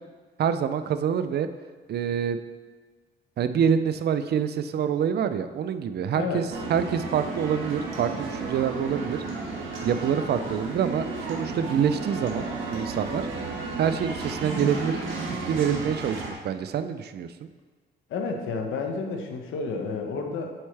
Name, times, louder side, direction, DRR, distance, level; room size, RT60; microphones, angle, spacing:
voice 1, 0.4-1.5 1.9-2.4 3.4-9.2 9.8-13.3 13.8-15.0 15.5-17.5, right 8 dB, 55° right, 11 dB, 0.4 m, -26 dB
voice 2, 6.1-6.5 18.1-20.5, left 4 dB, 80° left, 3 dB, 1.0 m, -31 dB
sound 1, 6.5-16.3, right 3 dB, 85° right, 1.5 m, -33 dB
8.8 x 4.4 x 3.3 m, 1.4 s
cardioid pair, 90°, 20 cm